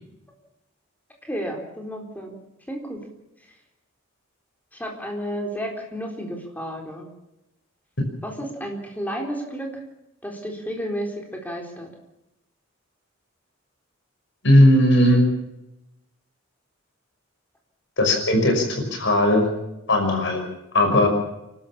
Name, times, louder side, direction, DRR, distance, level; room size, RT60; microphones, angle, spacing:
voice 1, 1.2-2.3 2.7-3.0 4.7-7.1 8.2-9.7 10.2-11.9, equal, 10° left, 1 dB, 4.1 m, -32 dB
voice 2, 14.4-15.2 18.0-18.6 18.9-19.5 19.9-20.4 20.7-21.1, left 1 dB, 60° left, 3 dB, 5.7 m, -17 dB
29.0 x 13.0 x 7.3 m, 0.89 s
head